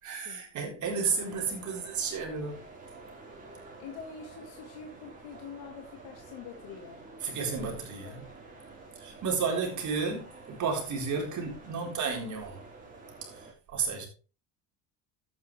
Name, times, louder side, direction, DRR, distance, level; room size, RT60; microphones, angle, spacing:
voice 1, 0.0-2.6 7.2-8.2 9.0-12.6 13.2-13.3 13.7-14.1, right 5 dB, 45° right, 4.2 m, -32 dB
sound 1, 0.8-13.5, right 3 dB, 20° right, 4.2 m, -49 dB
voice 2, 3.8-7.1 7.3-7.8 8.0-8.3, left 6 dB, 75° left, 1.9 m, -46 dB
11.5 x 8.8 x 3.3 m
cardioid pair, 110°, 39 cm